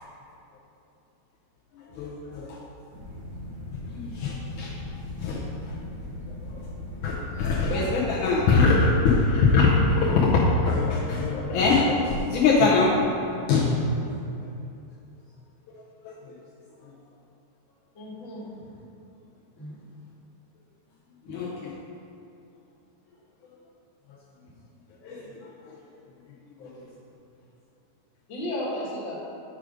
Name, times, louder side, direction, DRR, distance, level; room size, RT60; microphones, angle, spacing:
voice 1, 1.7-2.6 3.9-4.8 5.2-5.7 6.3-6.6 7.0-12.9 13.5-13.7 15.7-16.3 21.3-21.7 25.0-25.4 25.7-25.8 26.6-26.7, left 3 dB, 90° left, -6 dB, 1.7 m, -23 dB
sound 1, 2.9-8.2, left 2 dB, 35° right, 1.1 m, -39 dB
voice 2, 17.9-18.7 19.6-19.7 21.2-21.4 28.3-29.2, left 1 dB, 50° left, -6 dB, 1.5 m, -34 dB
8.2 x 5.0 x 5.0 m, 2.6 s
omnidirectional pair, 4.7 m